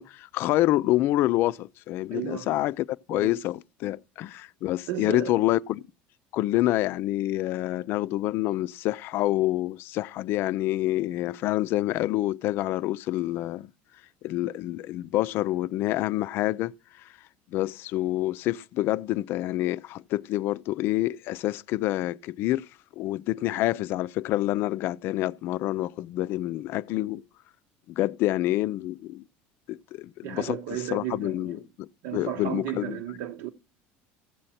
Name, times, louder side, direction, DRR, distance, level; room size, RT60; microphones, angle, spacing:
voice 1, 0.0-5.8 6.3-13.7 14.2-16.7 17.5-22.7 23.0-27.2 27.9-29.2 29.7-30.6 30.9-33.0, left 16 dB, 50° left, 0.5 m, -27 dB
voice 2, 2.1-2.5 3.1-3.4 4.9-5.3 30.2-31.6 32.0-33.5, right 12 dB, 70° right, 1.0 m, -34 dB
14.5 x 7.8 x 4.2 m
cardioid pair, 145°, 5 cm